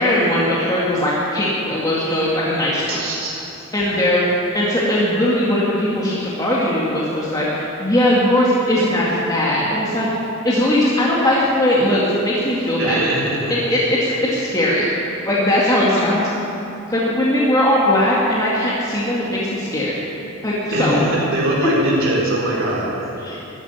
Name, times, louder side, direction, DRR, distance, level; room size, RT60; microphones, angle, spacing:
voice 1, 0.0-3.0 3.7-4.2 4.5-10.1 10.4-13.0 13.5-14.9 15.2-16.3 16.9-20.0 20.4-21.0 21.6-21.7 23.2-23.4, left 1 dB, 20° left, -7 dB, 2.2 m, -19 dB
voice 2, 2.9-3.6 12.8-13.6 20.7-23.4, right 1 dB, 65° right, -5 dB, 4.1 m, -22 dB
13.5 x 10.0 x 9.9 m, 2.9 s
head